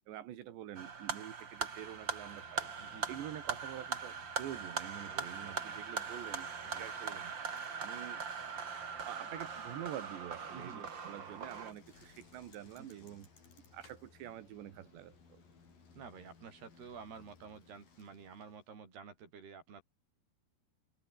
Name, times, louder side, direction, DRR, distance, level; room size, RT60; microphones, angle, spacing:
voice 1, 0.1-2.7 3.1-7.3 7.8-8.2 9.0-13.3 13.7-15.4, right 12 dB, 85° right, 4.2 m, -47 dB
sound 1, 0.7-11.7, right 6 dB, 35° right, 2.2 m, -41 dB
Bicycle, 1.2-18.7, left 5 dB, 55° left, 7.5 m, -62 dB
voice 2, 2.8-3.2 5.1-5.8 6.6-6.8 10.5-10.9 12.8-13.2 16.0-19.8, right 6 dB, 65° right, 7.3 m, -51 dB
omnidirectional pair, 4.9 m